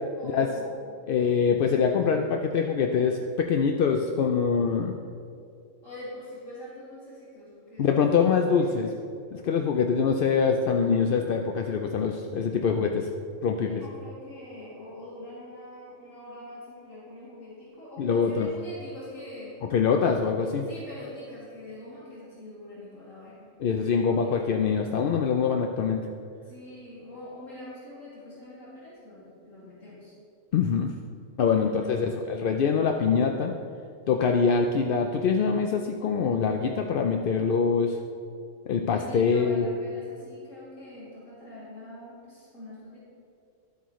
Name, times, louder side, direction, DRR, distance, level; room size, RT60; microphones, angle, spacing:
voice 1, 0.1-0.9 2.0-2.2 2.5-2.6 5.8-8.9 13.6-19.5 20.6-23.5 24.0-24.4 26.4-30.1 31.6-32.2 38.9-43.0, left 1 dB, 80° left, -9 dB, 3.0 m, -44 dB
voice 2, 1.1-5.0 7.8-8.9 9.3-13.1 13.4-13.8 18.0-18.5 19.7-20.7 23.6-26.0 30.5-30.9 31.4-33.5 34.1-38.0 38.7-39.6, left 6 dB, 65° left, 3 dB, 0.5 m, -24 dB
11.5 x 8.1 x 3.1 m, 2.4 s
omnidirectional pair, 1.4 m